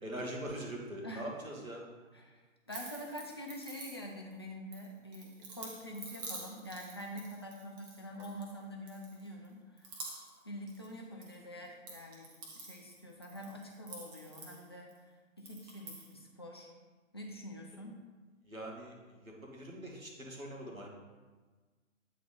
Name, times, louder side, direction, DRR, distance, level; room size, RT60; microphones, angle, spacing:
voice 1, 0.0-1.8 18.4-20.9, right 1 dB, 90° right, -2 dB, 1.9 m, -42 dB
voice 2, 2.1-9.9 10.4-12.3 12.6-16.7 17.1-18.0, equal, 20° left, -1 dB, 0.4 m, -46 dB
sound 1, 2.7-4.3 4.7-8.5 8.9-9.5 9.8-10.4 10.7-11.3 11.6-15.0 15.4-16.1, right 3 dB, 15° right, 0.7 m, -48 dB
8.3 x 4.1 x 4.2 m, 1.3 s
figure-of-eight pair, 130°, 40 cm